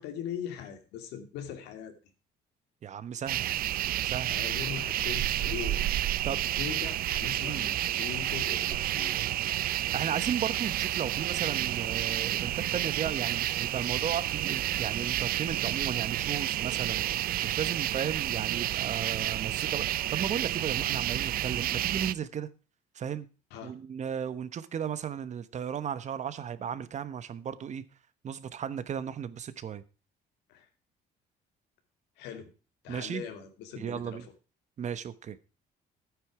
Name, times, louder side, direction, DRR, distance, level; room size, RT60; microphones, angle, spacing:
voice 1, 0.0-1.9 4.2-9.3 23.5-23.7 30.5-30.7 32.2-32.5 32.8-34.3, left 9 dB, 90° left, 7 dB, 2.6 m, -41 dB
voice 2, 2.8-3.5 4.0-4.4 6.2-6.4 7.4-7.7 9.9-17.0 17.4-22.5 22.9-23.3 23.6-27.8 28.2-29.8 32.9-33.2 33.8-34.3 34.8-35.4, right 8 dB, 45° right, 14 dB, 1.1 m, -35 dB
sound 1, 3.3-22.1, right 13 dB, 60° right, 0.5 m, -30 dB
12.0 x 9.6 x 4.8 m, 0.33 s
cardioid pair, 110°, 17 cm